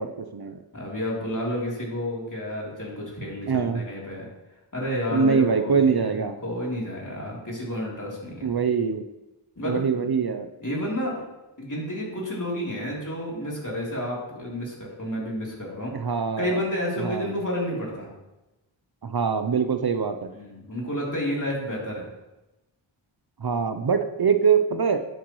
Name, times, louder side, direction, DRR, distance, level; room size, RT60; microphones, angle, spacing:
voice 1, 0.0-0.6 3.5-3.8 5.1-6.4 8.4-9.0 9.6-10.5 15.9-16.6 17.0-17.3 19.0-20.3 23.4-25.1, right 6 dB, 50° right, 8 dB, 0.7 m, -23 dB
voice 2, 0.7-4.3 4.7-6.2 6.4-8.5 9.6-10.1 10.6-11.2 11.6-15.9 16.4-18.1 20.3-22.1, equal, 40° left, -4 dB, 3.5 m, -30 dB
11.0 x 8.0 x 3.2 m, 1.0 s
wide cardioid pair, 50°, 48 cm